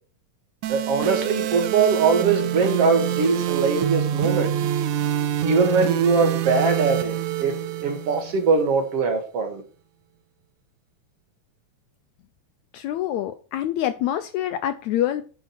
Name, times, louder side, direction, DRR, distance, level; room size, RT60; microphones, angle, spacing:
sound 1, 0.6-8.6, right 11 dB, 75° right, 2.1 m, -26 dB
voice 1, 0.7-4.5 5.4-7.5 7.8-9.6, right 4 dB, 55° right, 2.4 m, -21 dB
voice 2, 12.7-15.2, left 12 dB, 75° left, 1.8 m, -26 dB
9.9 x 4.8 x 6.0 m
omnidirectional pair, 3.7 m